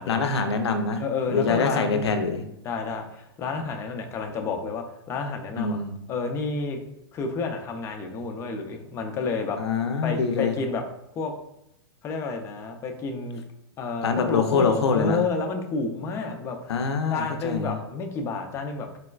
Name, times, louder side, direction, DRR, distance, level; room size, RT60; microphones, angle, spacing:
voice 1, 0.1-1.0 1.3-2.4 5.5-5.9 9.6-10.5 14.0-15.2 16.7-17.7, left 4 dB, 85° left, 6 dB, 0.4 m, -24 dB
voice 2, 1.0-2.0 2.6-5.8 6.1-6.8 7.1-9.6 10.0-10.8 11.2-11.3 12.0-13.4 13.8-16.7 17.1-19.0, left 4 dB, 20° left, 4 dB, 0.4 m, -30 dB
3.9 x 2.1 x 2.2 m, 0.80 s
hypercardioid pair, 125°, 14 cm